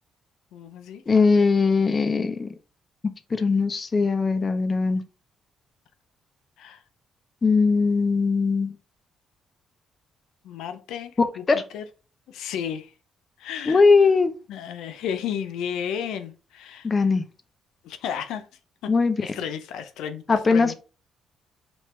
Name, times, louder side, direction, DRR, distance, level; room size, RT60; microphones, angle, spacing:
voice 1, 0.5-1.0 1.3-1.4 6.6-6.8 10.4-11.8 12.3-12.9 13.4-13.8 14.5-16.9 17.8-18.5 18.8-18.9 19.2-20.8, left 8 dB, 90° left, 0.4 m, -33 dB
voice 2, 1.1-2.5 3.3-5.0 7.4-8.8 11.5-11.6 13.7-14.3 16.8-17.2 18.9-19.2 20.3-20.8, left 4 dB, 35° left, 0.5 m, -20 dB
3.1 x 2.9 x 4.3 m
cardioid pair, 90°, 0 cm